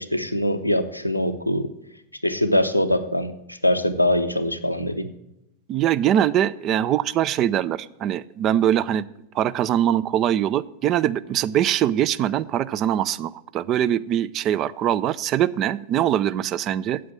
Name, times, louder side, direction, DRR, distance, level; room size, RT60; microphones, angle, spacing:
voice 1, 0.0-1.7 2.2-5.1, left 1 dB, 90° left, 6 dB, 0.8 m, -23 dB
voice 2, 5.7-9.1 9.3-17.0, right 11 dB, 35° right, 17 dB, 0.4 m, -22 dB
8.5 x 8.0 x 7.5 m, 0.87 s
figure-of-eight pair, 90°, 0 cm